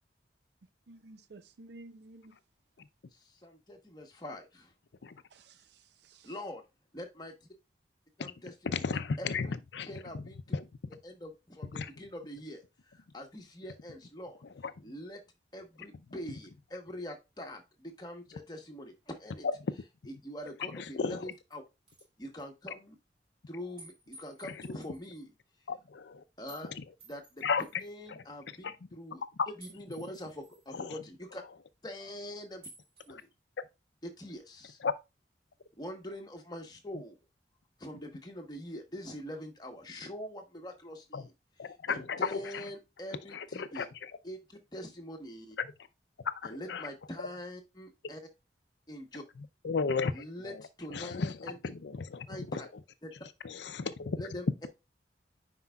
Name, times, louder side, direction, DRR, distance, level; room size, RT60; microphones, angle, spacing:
voice 1, 0.9-2.4 5.3-6.3, right 2 dB, 70° right, 0.6 m, -53 dB
voice 2, 3.1-4.7 6.2-6.6 6.9-7.3 8.2-8.8 9.2-9.6 9.9-10.6 11.0-12.6 12.9-14.4 14.8-15.2 15.5-19.5 20.1-21.6 22.2-23.0 23.5-25.3 26.4-26.7 27.1-27.4 27.8-29.2 29.6-31.4 31.8-32.7 33.1-33.3 34.2-34.8 35.8-37.2 37.8-41.3 41.7-43.9 44.2-45.6 46.4-48.2 48.9-49.2 50.1-51.6 52.3-52.7 53.0-53.1 54.2-54.7, equal, 25° left, 1.2 m, -44 dB
voice 3, 8.7-10.0 10.5-10.7 11.7-11.9 14.6-14.7 19.4-19.7 20.7-21.3 24.4-24.6 25.7-26.2 26.6-26.8 27.4-27.6 28.1-28.2 28.6-28.7 29.4-29.5 30.7-31.0 33.1-33.2 33.6-33.7 34.8-34.9 41.1-41.3 41.6-42.6 43.3-44.1 45.6-45.7 46.2-46.9 49.6-50.6 50.9-52.6 53.4-54.2, left 5 dB, 75° left, 0.5 m, -34 dB
sound 1, 20.4-20.5 21.1-21.5 21.9-22.1 22.4-22.5 23.8-25.2 26.5-26.7 27.0-27.9 29.6-30.7 32.6-33.2, right 2 dB, 30° right, 3.2 m, -55 dB
9.6 x 4.6 x 2.3 m
head